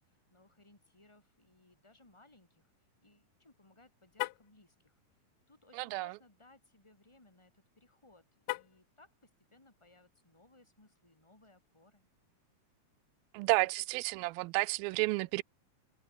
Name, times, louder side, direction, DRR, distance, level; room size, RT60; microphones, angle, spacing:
voice 1, 0.0-2.7 3.0-12.1, left 2 dB, 10° left, 3.8 m, -64 dB
Car, 4.1-4.6 8.4-8.9, left 21 dB, 80° left, 1.9 m, -38 dB
voice 2, 13.3-15.4, right 23 dB, 90° right, 2.4 m, -31 dB
omnidirectional pair, 4.1 m